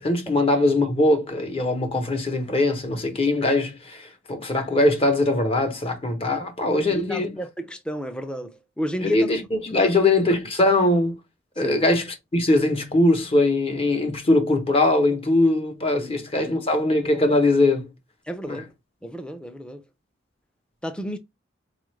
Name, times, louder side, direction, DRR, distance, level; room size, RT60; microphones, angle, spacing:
voice 1, 0.0-7.4 9.0-11.1 11.6-12.1 12.3-17.9 18.5-18.6, left 2 dB, 30° left, 0.8 m, -21 dB
voice 2, 6.3-9.3 9.7-9.9 11.6-11.8 16.0-16.6 18.3-18.7 19.0-19.8 20.8-21.2, equal, 5° left, 0.5 m, -33 dB
4.1 x 2.4 x 3.1 m
head